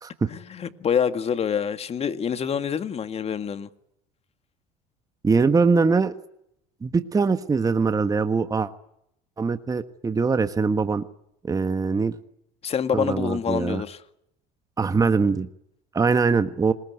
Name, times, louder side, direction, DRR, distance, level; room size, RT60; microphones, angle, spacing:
voice 1, 0.3-3.7 12.6-14.0, left 7 dB, 35° left, 10 dB, 2.0 m, -26 dB
voice 2, 5.2-6.1 6.8-8.7 9.4-11.0 11.5-12.2 12.9-13.8 14.8-15.5 15.9-16.7, right 4 dB, 20° right, 10 dB, 1.4 m, -22 dB
27.0 x 21.0 x 9.5 m, 0.80 s
supercardioid pair, 100°, 18 cm